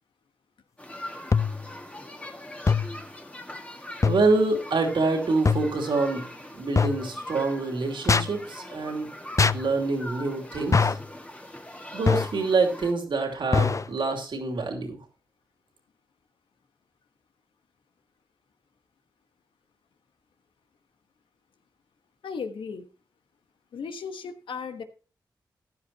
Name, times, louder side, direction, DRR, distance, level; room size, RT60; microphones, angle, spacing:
sound 1, 0.8-12.9, left 1 dB, 15° left, 2.0 m, -42 dB
sound 2, 1.3-1.7 2.7-3.0 4.0-4.3 5.5-5.8 6.8-7.1 8.1-8.4 9.4-9.7 10.7-11.1 12.1-12.4 13.5-13.9, left 5 dB, 40° left, 0.6 m, -23 dB
voice 1, 4.0-6.3 6.5-9.1 9.5-11.0 11.9-15.0, right 3 dB, 75° right, 2 dB, 2.8 m, -26 dB
voice 2, 22.2-22.9 23.7-24.8, left 5 dB, 85° left, 7 dB, 1.3 m, -35 dB
15.0 x 10.5 x 2.9 m, 0.35 s
cardioid pair, 45°, 8 cm